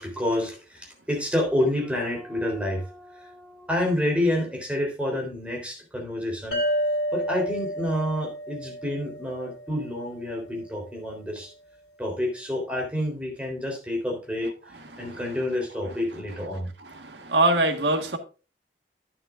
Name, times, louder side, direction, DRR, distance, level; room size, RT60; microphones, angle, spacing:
voice 1, 0.0-6.6 7.1-11.5 12.0-14.5 15.0-16.7, left 1 dB, 5° right, 3.5 m, -28 dB
sound 1, 6.5-10.0, equal, 80° left, 2.9 m, -30 dB
voice 2, 14.9-15.2 16.8-18.2, right 2 dB, 75° right, 1.5 m, -24 dB
11.0 x 9.6 x 2.5 m
head